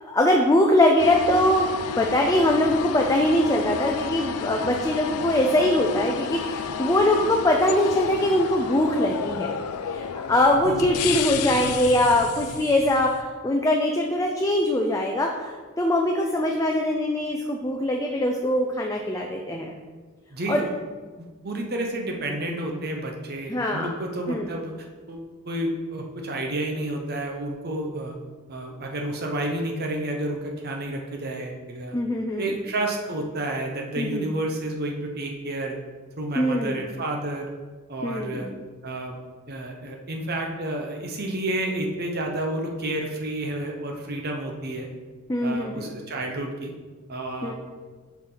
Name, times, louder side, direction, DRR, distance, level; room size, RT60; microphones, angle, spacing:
voice 1, 0.0-1.6 2.0-9.5 9.9-19.7 20.5-20.6 23.5-23.9 24.3-24.5 31.9-32.5 34.0-34.3 36.4-36.9 38.0-38.5 45.3-45.9 47.4-47.5, left 1 dB, 15° left, 1 dB, 0.5 m, -22 dB
sound 1, 1.0-13.2, left 7 dB, 85° left, 0.4 m, -31 dB
voice 2, 20.3-20.6 21.2-24.7 25.1-28.2 28.5-32.0 32.4-35.8 36.2-37.5 37.9-38.5 38.8-39.2 39.5-44.9 45.4-46.7 47.1-47.5, right 1 dB, 45° right, 1 dB, 0.9 m, -30 dB
7.0 x 5.9 x 3.9 m, 1.4 s
head